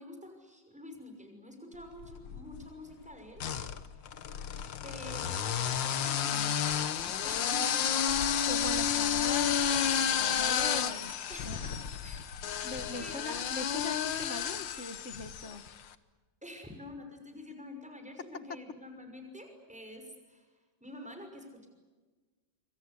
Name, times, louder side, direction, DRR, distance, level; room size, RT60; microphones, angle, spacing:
voice 1, 0.0-4.2 4.8-8.0 8.6-9.0 11.3-12.4 13.0-13.5 16.4-21.7, left 1 dB, 5° right, 5 dB, 5.8 m, -48 dB
sound 1, 2.0-2.7 3.4-15.7, left 8 dB, 80° left, 1.9 m, -31 dB
voice 2, 8.4-11.1 11.4-11.6 12.6-15.6, left 3 dB, 40° left, 11 dB, 1.6 m, -41 dB
26.5 x 25.5 x 8.2 m, 1.3 s
omnidirectional pair, 2.0 m